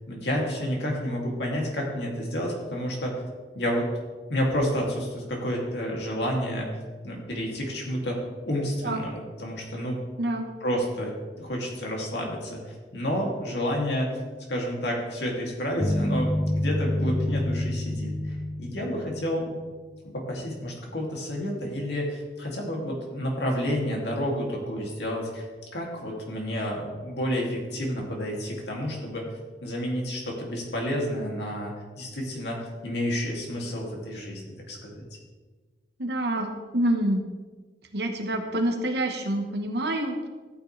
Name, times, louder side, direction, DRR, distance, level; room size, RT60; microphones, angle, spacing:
voice 1, 0.1-3.2 3.5-3.9 4.3-6.7 7.0-8.2 8.5-10.0 10.6-14.1 14.5-19.6 20.1-25.4 25.7-29.2 29.6-34.4 34.7-35.0, equal, 70° left, -1 dB, 2.7 m, -30 dB
sound 1, 15.8-20.0, left 1 dB, 15° left, 0.6 m, -28 dB
voice 2, 36.0-37.2 37.9-40.3, right 1 dB, 65° right, 4 dB, 1.3 m, -27 dB
14.0 x 9.1 x 3.4 m, 1.4 s
head